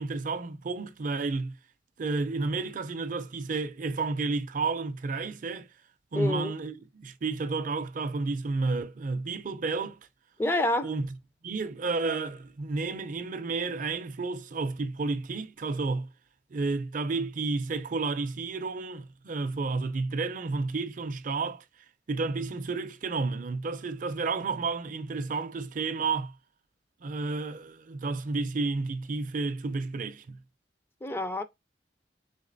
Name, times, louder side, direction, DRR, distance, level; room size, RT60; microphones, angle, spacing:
voice 1, 0.0-1.6 2.0-5.7 6.1-10.0 10.8-11.1 11.4-16.1 16.5-21.6 22.1-26.3 27.0-30.4, right 3 dB, 50° right, 0.5 m, -31 dB
voice 2, 6.1-6.5 10.4-10.9 31.0-31.4, left 1 dB, 15° left, 0.4 m, -27 dB
4.0 x 3.7 x 2.5 m
head